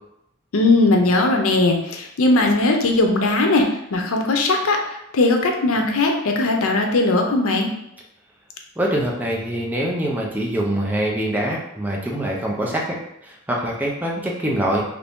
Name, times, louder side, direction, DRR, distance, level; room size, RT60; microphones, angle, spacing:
voice 1, 0.5-4.8 5.1-7.7, left 2 dB, 85° left, 3 dB, 0.6 m, -18 dB
voice 2, 8.8-13.0 13.2-14.8, right 1 dB, 10° right, -2 dB, 0.5 m, -24 dB
2.9 x 2.6 x 3.5 m, 0.84 s
head